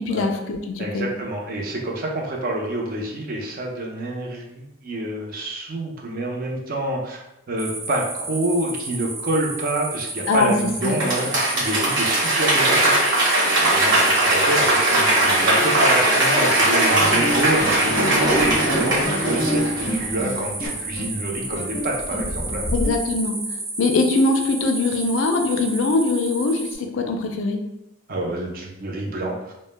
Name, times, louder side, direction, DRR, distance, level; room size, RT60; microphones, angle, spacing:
voice 1, 0.0-1.1 10.3-10.5 10.8-11.0 22.7-23.4 23.8-27.6, left 3 dB, 65° left, 4 dB, 0.3 m, -22 dB
voice 2, 0.8-22.7 28.1-29.5, right 1 dB, 45° right, 0 dB, 0.5 m, -28 dB
sound 1, 7.6-26.8, right 2 dB, 85° right, 0.7 m, -32 dB
Applause / Crowd, 10.8-20.2 20.6-20.7, right 1 dB, 65° right, 1.0 m, -19 dB
sound 2, 17.2-22.9, left 1 dB, 25° left, 0.6 m, -30 dB
2.0 x 2.0 x 3.1 m, 0.86 s
head